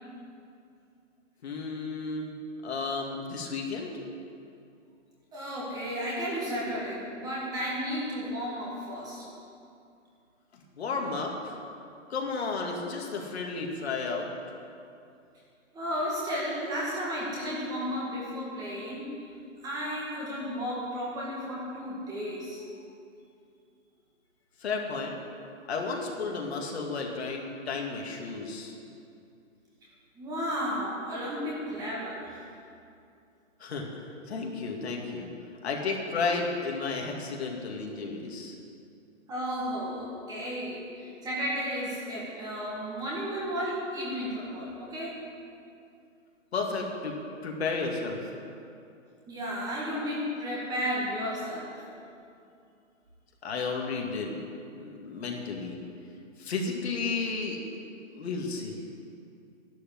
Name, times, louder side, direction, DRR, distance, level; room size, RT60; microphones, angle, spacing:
voice 1, 1.4-2.4 2.6-3.9 10.5-11.6 12.1-14.3 24.6-25.1 25.7-28.7 33.6-34.0 34.3-35.3 35.6-38.6 46.5-47.2 47.4-48.3 53.4-54.4 54.7-55.8 56.4-57.7 58.1-58.8, left 4 dB, 50° left, 0 dB, 2.4 m, -33 dB
voice 2, 5.3-9.3 15.7-19.2 19.6-22.6 30.2-32.4 39.3-45.2 49.3-51.8, equal, 10° right, -5 dB, 1.9 m, -33 dB
12.0 x 11.5 x 7.7 m, 2.5 s
hypercardioid pair, 155°, 40 cm